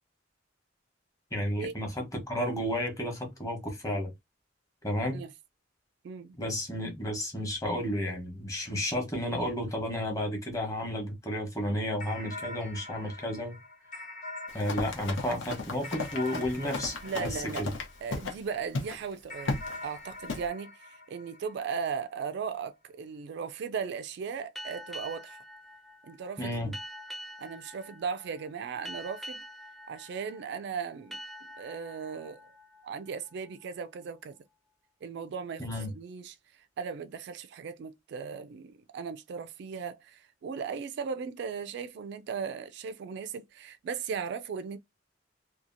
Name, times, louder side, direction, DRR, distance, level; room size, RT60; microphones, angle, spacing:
voice 1, 1.3-4.1 4.8-5.2 6.4-13.6 14.5-17.7 26.4-26.7 35.6-35.9, left 1 dB, 15° left, 1.0 m, -32 dB
voice 2, 6.0-6.4 17.0-17.7 18.0-25.4 26.0-26.8 27.4-29.4 29.9-31.2 31.6-32.5 32.8-34.4 35.0-44.8, right 6 dB, 60° right, 0.3 m, -37 dB
sound 1, 12.0-18.6 19.3-22.1, left 2 dB, 45° left, 0.9 m, -44 dB
Run, 14.5-18.4 18.7-19.0 19.5-19.8 20.3-20.5, left 3 dB, 80° left, 0.8 m, -35 dB
sound 2, 24.5-33.8, equal, ahead, 0.5 m, -46 dB
2.8 x 2.3 x 2.5 m
head